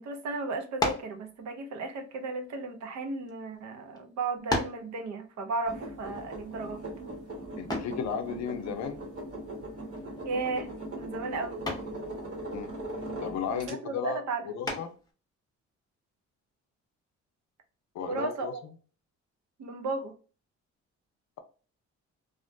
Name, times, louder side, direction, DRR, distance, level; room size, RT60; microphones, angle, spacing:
voice 1, 0.0-6.8 10.2-10.7 10.9-11.6 13.5-14.4 18.0-18.6 19.6-20.1, right 3 dB, 65° right, 0.7 m, -34 dB
sound 1, 0.8-1.2 2.1-3.3 4.0-4.1 4.5-4.9 7.7-8.0 9.9-10.3 10.7-11.0 11.7-12.0 14.6-15.1, left 1 dB, 15° left, 0.6 m, -32 dB
sound 2, 5.7-13.7, right 1 dB, 50° right, 1.0 m, -40 dB
voice 2, 7.6-9.0 12.5-12.7 13.2-14.9 17.9-18.5, left 7 dB, 65° left, 0.5 m, -34 dB
2.4 x 2.1 x 2.5 m
cardioid pair, 90°, 30 cm